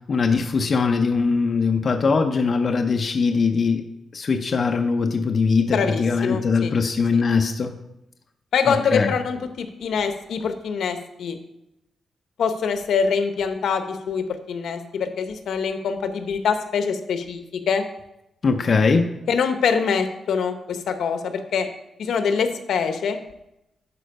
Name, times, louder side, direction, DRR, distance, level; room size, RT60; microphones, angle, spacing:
voice 1, 0.1-3.8 4.1-7.7 8.7-9.1 18.4-19.1, left 4 dB, 40° left, 4 dB, 0.5 m, -21 dB
voice 2, 5.7-6.7 7.1-7.2 8.5-11.4 12.4-17.8 19.3-21.7 22.0-23.2, left 6 dB, 80° left, 8 dB, 0.9 m, -24 dB
11.5 x 4.4 x 5.2 m, 0.87 s
wide cardioid pair, 160°, 0 cm